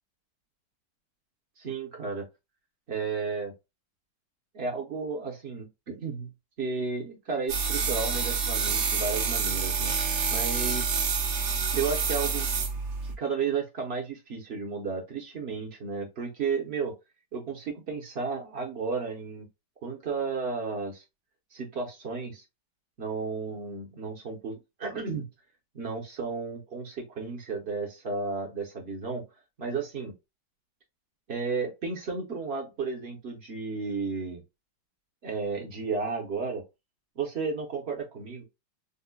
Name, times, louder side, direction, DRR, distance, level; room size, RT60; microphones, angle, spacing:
voice 1, 1.6-2.3 2.9-3.5 4.5-6.3 6.6-9.9 10.3-10.9 11.7-12.6 13.0-16.9 17.3-19.5 19.8-21.0 21.5-22.4 23.0-25.3 25.7-29.2 29.6-30.1 31.3-34.4 35.2-36.6 37.2-38.4, right 4 dB, 55° right, 0.7 m, -33 dB
sound 1, 7.5-13.1, right 5 dB, 90° right, 0.6 m, -28 dB
5.2 x 2.1 x 2.2 m
omnidirectional pair, 2.2 m